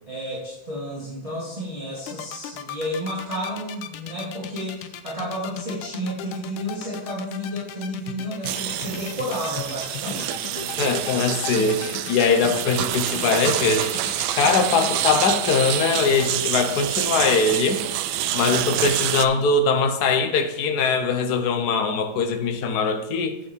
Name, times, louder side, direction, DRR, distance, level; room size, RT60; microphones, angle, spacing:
voice 1, 0.1-10.7, equal, 15° right, -7 dB, 2.1 m, -31 dB
sound 1, 2.0-16.7, left 10 dB, 90° left, 1.6 m, -37 dB
sound 2, 8.4-19.3, right 12 dB, 75° right, 1.3 m, -27 dB
voice 2, 10.8-13.9 14.4-17.8 18.3-23.4, left 4 dB, 55° left, 6 dB, 1.4 m, -21 dB
8.4 x 7.2 x 4.6 m, 0.90 s
omnidirectional pair, 2.3 m